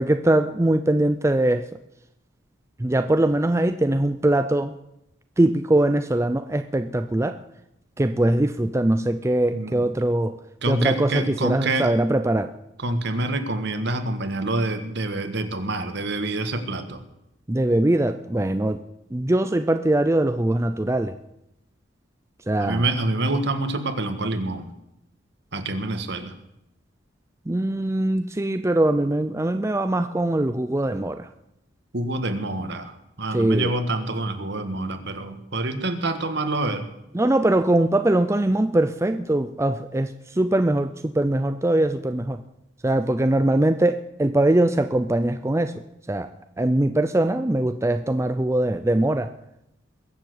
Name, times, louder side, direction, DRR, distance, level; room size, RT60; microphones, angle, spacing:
voice 1, 0.0-1.7 2.8-4.7 5.4-7.4 8.0-10.4 10.6-12.5 17.5-18.8 19.1-21.2 22.5-22.9 27.5-31.3 33.3-33.7 37.1-42.4 42.8-45.7 46.1-46.3 46.6-49.3, right 1 dB, 15° right, 9 dB, 0.5 m, -22 dB
voice 2, 9.5-9.8 10.6-11.9 12.8-17.0 22.6-24.7 25.5-26.3 31.9-36.9, right 2 dB, 60° right, 8 dB, 1.6 m, -26 dB
21.5 x 7.4 x 7.9 m, 0.84 s
head